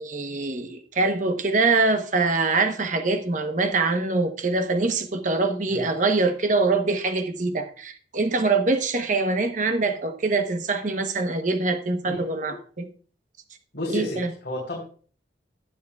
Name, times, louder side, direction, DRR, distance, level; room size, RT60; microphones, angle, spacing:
voice 1, 0.0-12.9 13.9-14.3, right 3 dB, 45° right, 0.9 m, -24 dB
voice 2, 12.0-12.6 13.7-14.8, left 1 dB, 60° left, 3.4 m, -32 dB
19.0 x 7.2 x 2.3 m
head